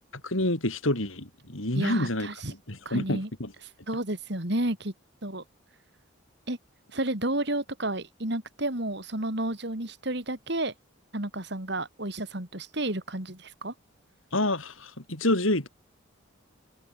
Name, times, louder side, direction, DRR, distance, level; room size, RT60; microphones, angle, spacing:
voice 1, 0.2-2.3 2.7-3.5 14.3-15.7, left 1 dB, 75° left, 5.3 m, -28 dB
voice 2, 1.7-2.5 2.8-3.3 3.9-4.9 5.2-5.4 6.5-6.6 6.9-10.7 11.1-13.7, right 1 dB, 55° right, 3.5 m, -31 dB
head